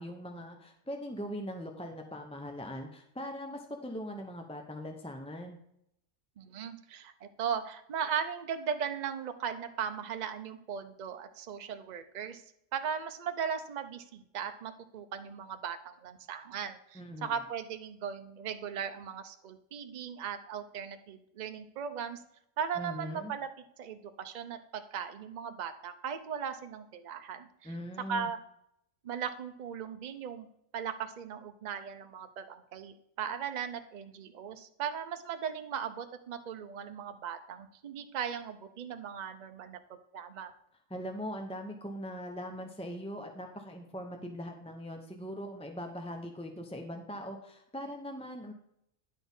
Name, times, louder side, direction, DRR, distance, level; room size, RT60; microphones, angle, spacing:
voice 1, 0.0-5.6 16.9-17.3 22.8-23.3 27.6-28.3 40.9-48.5, equal, 5° left, 3 dB, 0.4 m, -41 dB
voice 2, 6.4-12.4 12.7-22.2 22.6-23.5 23.8-27.7 28.1-28.4 29.0-30.5 30.7-39.8 40.1-40.5, right 7 dB, 45° right, 8 dB, 0.6 m, -38 dB
10.0 x 4.2 x 5.3 m, 0.76 s
omnidirectional pair, 1.3 m